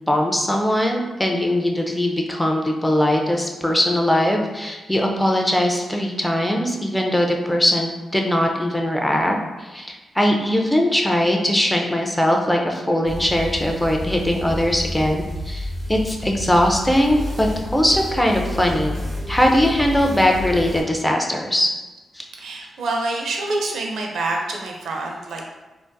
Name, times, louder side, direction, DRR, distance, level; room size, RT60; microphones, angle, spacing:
voice 1, 0.1-19.0 19.3-21.7 22.1-22.3, left 1 dB, 5° left, 1 dB, 0.3 m, -20 dB
sound 1, 13.0-20.8, left 1 dB, 15° right, 1.2 m, -30 dB
voice 2, 22.4-25.4, right 2 dB, 85° right, 0 dB, 0.5 m, -26 dB
3.7 x 2.5 x 2.2 m, 1.1 s
wide cardioid pair, 155°, 0 cm